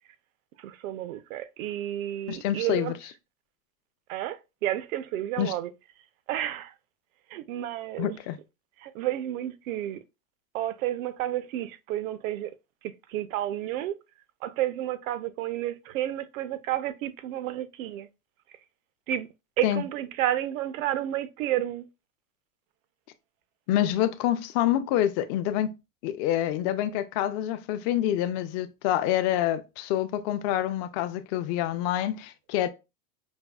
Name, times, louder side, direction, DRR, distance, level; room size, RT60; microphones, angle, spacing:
voice 1, 0.6-2.9 4.1-5.7 6.3-6.7 7.3-8.2 8.8-10.0 10.5-12.5 12.8-13.9 14.4-18.1 19.1-19.3 19.6-21.9, right 13 dB, 75° right, 0.6 m, -31 dB
voice 2, 2.3-2.9 5.4-5.5 8.0-8.4 19.6-19.8 23.7-25.7 26.0-32.7, left 12 dB, 45° left, 0.5 m, -27 dB
5.2 x 2.3 x 2.2 m
supercardioid pair, 135°, 41 cm